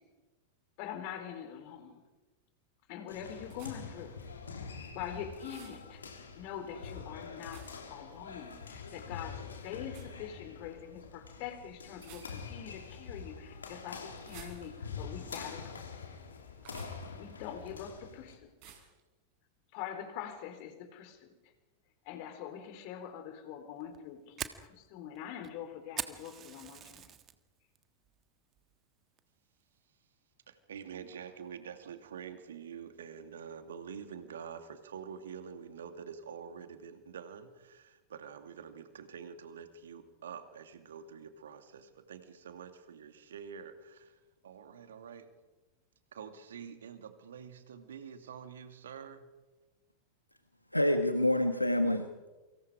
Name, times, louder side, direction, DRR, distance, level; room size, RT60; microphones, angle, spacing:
voice 1, 0.8-2.0 2.9-4.2 4.9-6.0 6.3-15.9 17.2-18.7 19.7-21.3 22.0-27.1, left 9 dB, 45° left, 7 dB, 4.2 m, -44 dB
sound 1, 3.1-18.4, left 5 dB, 70° left, 3.5 m, -45 dB
sound 2, 3.5-4.0 5.4-5.8 7.5-7.9 9.9-10.1 11.9-12.7 14.2-15.0 16.6-17.1 18.6-19.0, right 8 dB, 45° right, 5.3 m, -54 dB
Fire, 23.8-27.4 27.8-28.1 28.5-28.7 29.2-29.5, right 10 dB, 30° right, 1.6 m, -42 dB
voice 2, 30.5-45.3 46.1-49.3, right 7 dB, 65° right, 8 dB, 2.6 m, -47 dB
voice 3, 50.7-52.3, left 1 dB, 85° left, 8 dB, 1.5 m, -27 dB
28.5 x 25.0 x 5.0 m, 1.2 s
figure-of-eight pair, 90°, 0 cm